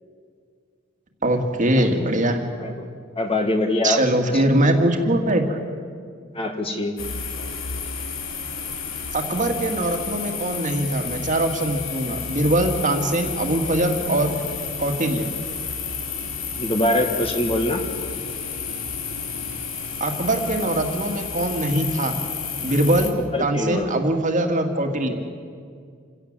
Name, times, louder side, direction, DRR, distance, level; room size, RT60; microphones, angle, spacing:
voice 1, 1.2-2.4 3.8-5.6 9.1-14.3 14.8-15.3 20.0-22.2 22.6-25.2, right 1 dB, 40° right, 4 dB, 2.1 m, -22 dB
voice 2, 3.1-4.0 4.3-4.4 6.3-6.9 16.6-17.8 23.3-23.9, left 1 dB, 30° left, 5 dB, 1.8 m, -23 dB
sound 1, 7.0-23.1, left 6 dB, 80° left, 2.4 m, -31 dB
27.5 x 17.0 x 7.5 m, 2.2 s
head